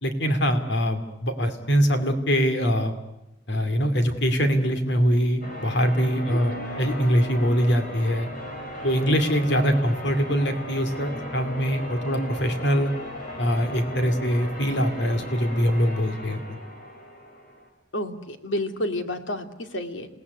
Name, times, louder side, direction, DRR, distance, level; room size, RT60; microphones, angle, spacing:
voice 1, 0.0-2.9 3.5-8.3 8.8-12.9 13.4-16.4, equal, 65° left, 8 dB, 2.5 m, -23 dB
Church bell, 5.4-17.7, left 1 dB, 45° left, 5.8 m, -37 dB
voice 2, 6.3-6.7 12.2-12.4 17.9-20.1, left 1 dB, 80° left, 7 dB, 2.4 m, -31 dB
27.5 x 18.5 x 9.6 m, 0.93 s
head